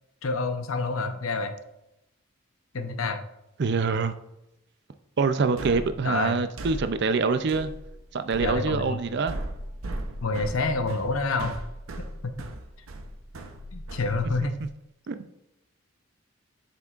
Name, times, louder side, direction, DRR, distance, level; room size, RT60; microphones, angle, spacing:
voice 1, 0.2-1.5 2.7-3.2 6.0-6.4 8.4-9.0 10.2-11.6 12.0-12.3 13.7-14.5, left 3 dB, 90° left, 0.8 m, -28 dB
voice 2, 3.6-4.1 5.2-7.7 8.1-9.4 14.4-14.5 15.1-15.3, right 4 dB, 55° right, 0.5 m, -25 dB
sound 1, 5.6-14.7, right 1 dB, 90° right, 0.7 m, -38 dB
7.5 x 5.9 x 2.4 m
head